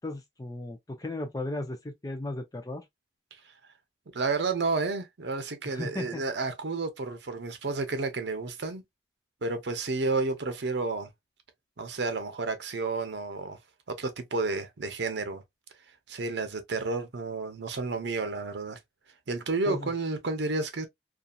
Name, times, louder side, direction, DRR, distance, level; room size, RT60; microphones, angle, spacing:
voice 1, 0.0-2.8 5.6-6.2 19.7-19.9, left 2 dB, 20° left, 0.5 m, -36 dB
voice 2, 4.1-8.8 9.4-11.1 11.8-13.6 13.9-15.4 16.1-18.8 19.3-20.9, right 3 dB, 75° right, 0.7 m, -31 dB
2.7 x 2.4 x 2.2 m
head